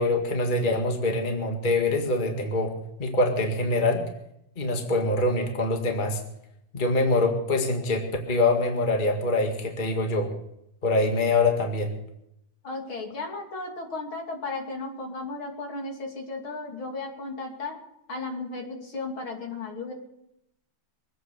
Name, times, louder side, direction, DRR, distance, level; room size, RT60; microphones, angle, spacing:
voice 1, 0.0-4.0 4.6-6.2 6.7-10.3 10.8-11.9, left 2 dB, 25° left, 3 dB, 1.9 m, -24 dB
voice 2, 12.6-17.8 18.1-19.9, left 3 dB, 70° left, 2 dB, 3.5 m, -35 dB
23.0 x 9.1 x 6.8 m, 0.80 s
omnidirectional pair, 2.4 m